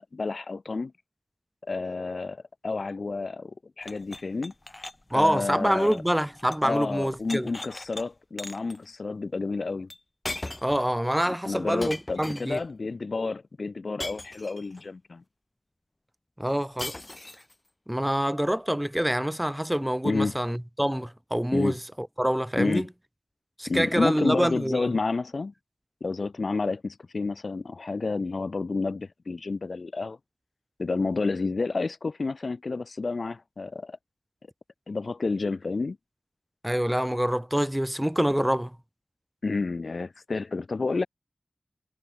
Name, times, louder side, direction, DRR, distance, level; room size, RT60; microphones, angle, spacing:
voice 1, 0.1-0.9 1.7-4.5 5.1-6.0 6.6-9.9 11.4-15.2 20.0-20.3 21.5-21.7 22.6-22.8 23.7-25.5 26.0-30.2 30.8-34.0 34.9-36.0 39.4-41.1, left 3 dB, 70° left, 0.8 m, -30 dB
sound 1, 3.8-6.7 7.0-8.0 8.4-8.8 9.9-10.0 10.2-10.8 11.8-12.7 14.0-14.8 16.8-17.5, left 1 dB, 30° left, 3.0 m, -39 dB
voice 2, 5.1-7.5 10.6-12.6 16.4-16.9 17.9-22.9 23.6-24.9 36.6-38.8, equal, 10° right, 2.8 m, -26 dB
cardioid pair, 40°, 0 cm